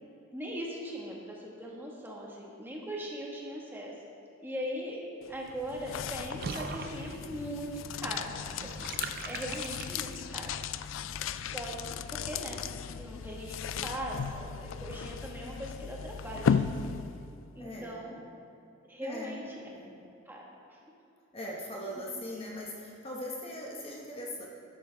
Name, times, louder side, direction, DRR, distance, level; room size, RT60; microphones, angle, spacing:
voice 1, 0.3-3.9 4.4-5.0 5.3-8.3 8.6-8.9 9.2-10.5 11.4-17.0 17.5-18.2 18.9-19.4 20.3-20.4 20.7-20.8, equal, 10° right, -3 dB, 1.6 m, -40 dB
sound 1, 5.2-17.4, left 7 dB, 65° left, 0.3 m, -36 dB
Water / Bathtub (filling or washing), 6.4-10.4, right 5 dB, 45° right, 0.4 m, -42 dB
voice 2, 9.0-9.4 17.6-18.2 19.0-20.0 21.3-24.5, left 1 dB, 30° left, -2 dB, 1.1 m, -41 dB
12.0 x 11.5 x 3.5 m, 2.6 s
head